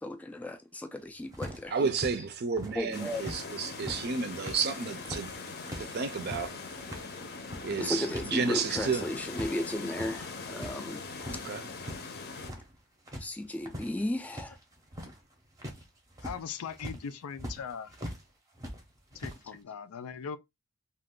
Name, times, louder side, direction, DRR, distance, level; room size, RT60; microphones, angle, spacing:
voice 1, 0.0-1.9 2.7-3.2 7.8-11.0 13.2-14.6, left 1 dB, 5° left, 0.3 m, -35 dB
sound 1, 1.3-3.4 3.7-8.3 8.6-9.5 9.8-10.8 11.1-12.0 12.3-12.8 13.0-18.2 18.5-19.4, equal, 15° right, 0.7 m, -42 dB
voice 2, 1.7-5.3 5.8-6.6 7.6-9.1 11.3-11.6, right 5 dB, 50° right, 0.5 m, -31 dB
sound 2, 2.9-12.5, left 4 dB, 50° left, 0.7 m, -41 dB
voice 3, 16.2-18.0 19.1-20.4, left 6 dB, 85° left, 0.4 m, -40 dB
2.4 x 2.3 x 3.6 m
head